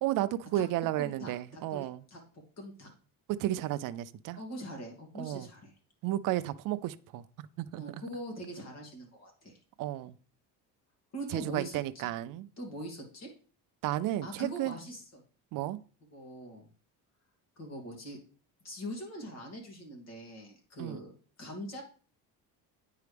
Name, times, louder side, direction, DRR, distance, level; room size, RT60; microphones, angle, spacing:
voice 1, 0.0-2.0 3.3-4.4 5.2-5.5 6.0-7.8 9.8-10.2 11.3-12.5 13.8-14.8 15.5-15.8 20.8-21.0, right 14 dB, 60° right, 0.6 m, -33 dB
voice 2, 1.0-1.8 2.1-2.2 2.6-2.9 4.4-5.7 7.7-9.6 11.1-11.8 12.6-13.3 14.2-15.2 16.1-16.7 17.6-18.2 18.6-21.1 21.4-21.8, equal, 45° left, 2.7 m, -42 dB
9.3 x 4.7 x 3.4 m
cardioid pair, 120°, 37 cm